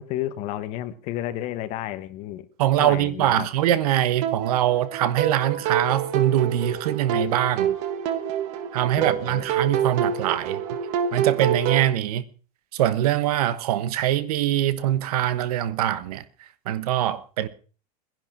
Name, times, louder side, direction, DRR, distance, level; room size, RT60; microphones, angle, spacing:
voice 1, 0.0-2.5 2.8-3.5 9.0-9.4, left 13 dB, 30° left, 0.9 m, -31 dB
voice 2, 2.6-7.7 8.7-10.6 11.1-12.2 12.7-16.2 16.6-17.5, right 12 dB, 60° right, 1.2 m, -23 dB
sound 1, 4.2-11.9, right 8 dB, 40° right, 1.5 m, -27 dB
19.0 x 10.5 x 5.9 m
supercardioid pair, 175°, 21 cm